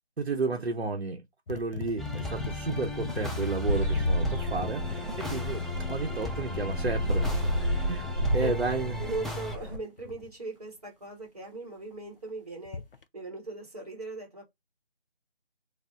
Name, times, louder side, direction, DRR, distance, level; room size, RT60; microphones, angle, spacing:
voice 1, 0.2-1.2 1.5-5.6 5.9-7.5 7.9-8.1 8.3-9.0, right 3 dB, 75° right, 0.8 m, -32 dB
sound 1, 1.5-10.3 12.7-13.0, left 4 dB, 60° left, 0.5 m, -40 dB
sound 2, 2.0-9.6, left 2 dB, ahead, 0.3 m, -37 dB
sound 3, 3.7-9.8, equal, 55° right, 1.4 m, -30 dB
voice 2, 9.0-12.8 13.1-14.4, right 3 dB, 40° right, 1.7 m, -39 dB
3.3 x 2.1 x 3.6 m
figure-of-eight pair, 175°, 31 cm